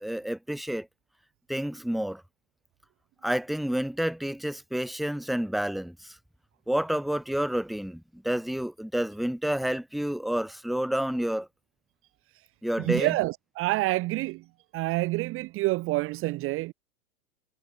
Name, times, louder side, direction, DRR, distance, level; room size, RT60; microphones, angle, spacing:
voice 1, 0.0-0.9 1.5-2.2 3.2-6.2 6.7-11.5 12.6-13.1, right 1 dB, ahead, 1.3 m, -29 dB
voice 2, 12.8-14.4 14.7-16.7, right 20 dB, 30° right, 0.8 m, -28 dB
hypercardioid pair, 105°, 46 cm